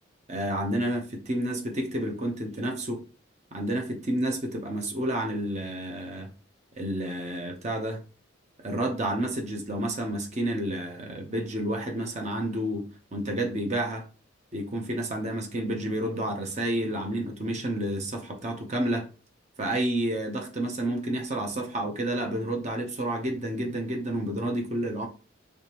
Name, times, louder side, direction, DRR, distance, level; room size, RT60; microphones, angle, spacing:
voice 1, 0.3-3.0 3.5-6.3 6.8-8.0 8.6-14.1 14.5-19.1 19.6-25.1, right 1 dB, 35° right, 0.8 m, -30 dB
3.4 x 3.3 x 2.9 m
head